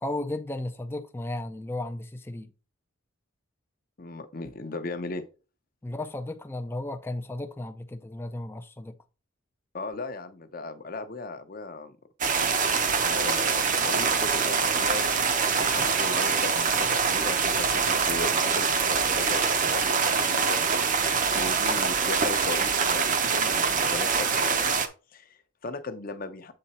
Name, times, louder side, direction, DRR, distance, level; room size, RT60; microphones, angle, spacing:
voice 1, 0.0-2.5 5.8-8.9, left 1 dB, 10° left, 0.3 m, -34 dB
voice 2, 4.0-5.2 9.7-12.0 13.0-15.1 15.7-21.0 21.3-24.7 25.1-26.5, left 3 dB, 40° left, 0.7 m, -37 dB
sound 1, 12.2-24.9, right 5 dB, 35° right, 0.6 m, -24 dB
7.7 x 3.8 x 4.2 m
head